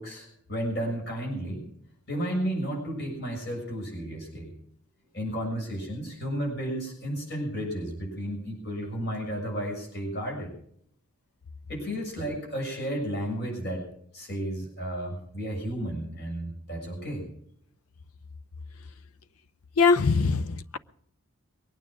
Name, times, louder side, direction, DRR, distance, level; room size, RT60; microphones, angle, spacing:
voice 1, 0.0-1.6 2.1-4.5 5.1-10.5 11.7-13.8 14.1-17.3, right 1 dB, 45° left, -1 dB, 6.8 m, -33 dB
voice 2, 19.8-20.8, left 4 dB, 80° left, 15 dB, 0.7 m, -22 dB
22.5 x 9.5 x 6.1 m, 0.67 s
head